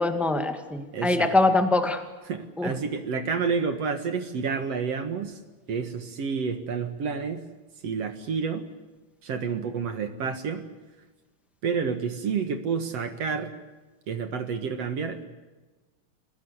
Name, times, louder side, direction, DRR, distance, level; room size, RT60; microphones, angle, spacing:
voice 1, 0.0-2.0 2.6-2.7, left 2 dB, ahead, 6 dB, 0.7 m, -23 dB
voice 2, 0.9-1.3 2.3-5.4 5.7-7.4 7.8-8.7 9.2-10.7 11.6-13.5 14.1-15.3, right 5 dB, 55° right, 8 dB, 2.3 m, -29 dB
24.5 x 20.0 x 8.1 m, 1.2 s
omnidirectional pair, 4.0 m